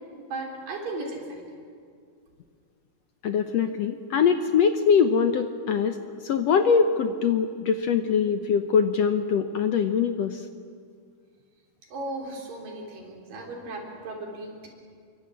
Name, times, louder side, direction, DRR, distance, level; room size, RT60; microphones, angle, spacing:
voice 1, 0.3-1.4 11.9-14.7, right 2 dB, 80° right, 1 dB, 5.6 m, -36 dB
voice 2, 3.2-6.0 6.2-10.5, left 6 dB, 65° left, 8 dB, 1.7 m, -23 dB
27.5 x 23.5 x 8.5 m, 2.2 s
omnidirectional pair, 3.8 m